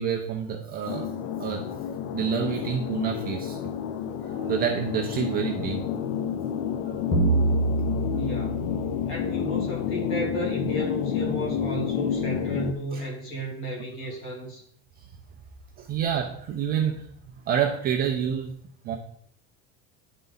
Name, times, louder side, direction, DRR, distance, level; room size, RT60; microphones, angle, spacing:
voice 1, 0.0-1.7 2.1-3.6 4.2-5.8 6.8-6.9 12.9-13.0 15.0-15.1 15.8-17.1 17.5-18.5 18.8-19.0, right 8 dB, 25° right, 1 dB, 0.5 m, -28 dB
sound 1, 0.9-12.7, left 8 dB, 75° left, 0.6 m, -30 dB
sound 2, 7.1-9.9, right 2 dB, 15° left, 0.8 m, -26 dB
voice 2, 8.2-8.6 9.0-14.6, equal, 35° left, -3 dB, 2.5 m, -33 dB
10.5 x 4.1 x 3.9 m, 0.65 s
cardioid pair, 170°, 35 cm